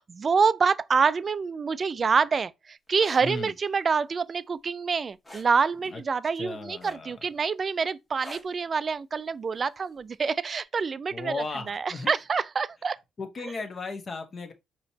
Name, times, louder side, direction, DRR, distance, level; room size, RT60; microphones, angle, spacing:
voice 1, 0.0-13.0, right 5 dB, 40° right, 0.3 m, -26 dB
sound 1, 2.9-3.2 5.2-5.5 6.8-7.2 8.2-8.6 10.0-10.2, left 1 dB, 15° left, 1.3 m, -44 dB
voice 2, 3.2-3.5 5.9-6.0 6.3-7.2 11.1-12.1 13.2-14.5, left 3 dB, 40° left, 1.0 m, -35 dB
5.0 x 3.0 x 2.7 m
cardioid pair, 90°, 0 cm